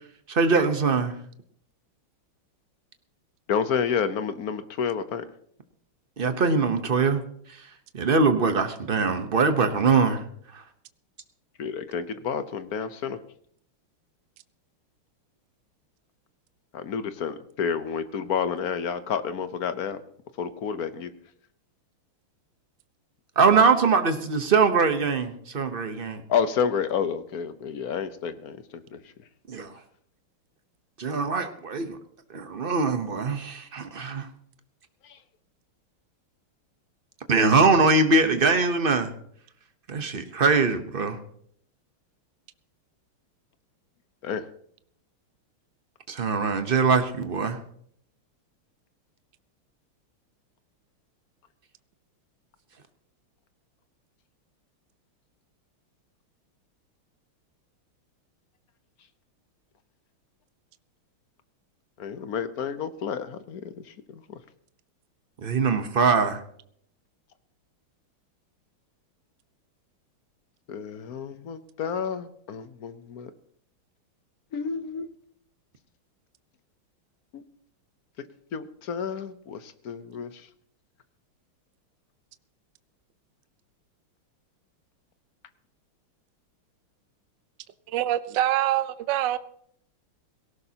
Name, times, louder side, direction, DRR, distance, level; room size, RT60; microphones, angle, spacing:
voice 1, 0.3-1.1 6.2-7.2 7.9-10.2 10.5-10.6 23.4-26.2 29.5-29.7 31.0-32.0 32.3-34.3 37.3-39.1 39.9-41.2 46.1-47.6 65.4-66.4, right 4 dB, 45° right, 8 dB, 0.7 m, -22 dB
voice 2, 3.5-5.2 11.6-13.2 16.7-20.0 20.4-21.1 26.3-29.0 35.0-35.2 44.2-44.5 62.0-64.4 70.7-73.3 74.5-75.1 77.3-77.4 78.5-80.5, left 7 dB, 55° left, 11 dB, 1.1 m, -30 dB
voice 3, 87.9-89.4, right 13 dB, 65° right, 13 dB, 1.3 m, -25 dB
18.0 x 17.5 x 2.9 m, 0.64 s
omnidirectional pair, 2.4 m